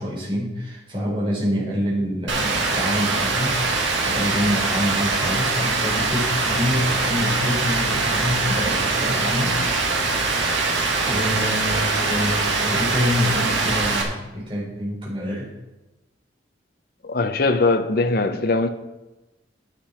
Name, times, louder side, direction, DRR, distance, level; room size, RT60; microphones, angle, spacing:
voice 1, 0.0-9.6 11.0-15.5, equal, 30° right, 4.2 m, -26 dB
Rain, 2.3-14.0, right 3 dB, 85° right, 1.9 m, -23 dB
voice 2, 17.0-18.7, left 3 dB, 55° left, 0.8 m, -21 dB
10.5 x 9.6 x 4.4 m
head